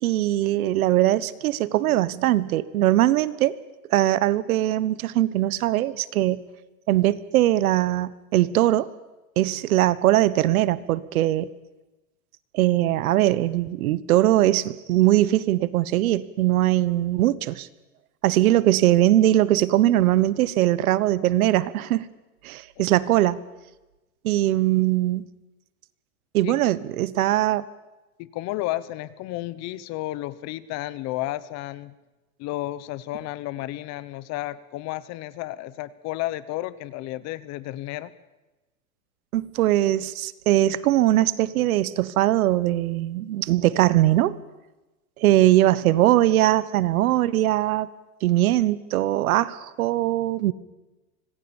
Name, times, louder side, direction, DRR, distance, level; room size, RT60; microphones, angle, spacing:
voice 1, 0.0-3.5 3.9-6.4 6.9-8.9 9.4-11.5 12.5-17.7 18.2-22.0 22.4-23.4 24.2-25.3 26.3-27.6 39.3-44.3 45.2-47.9 48.2-50.5, right 14 dB, 70° right, 18 dB, 1.3 m, -21 dB
voice 2, 28.2-31.9 32.4-38.1, left 16 dB, 35° left, 18 dB, 1.1 m, -32 dB
25.5 x 19.5 x 7.2 m, 1.1 s
supercardioid pair, 140°, 44 cm